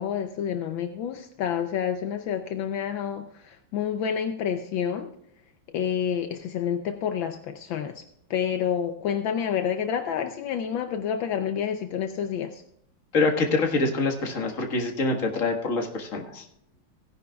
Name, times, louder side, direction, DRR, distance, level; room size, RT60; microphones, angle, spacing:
voice 1, 0.0-5.1 5.7-8.0 8.3-12.6, left 8 dB, 75° left, 6 dB, 1.5 m, -29 dB
voice 2, 13.1-16.4, left 3 dB, 40° left, 3 dB, 1.8 m, -25 dB
17.0 x 10.5 x 2.3 m, 0.72 s
omnidirectional pair, 2.2 m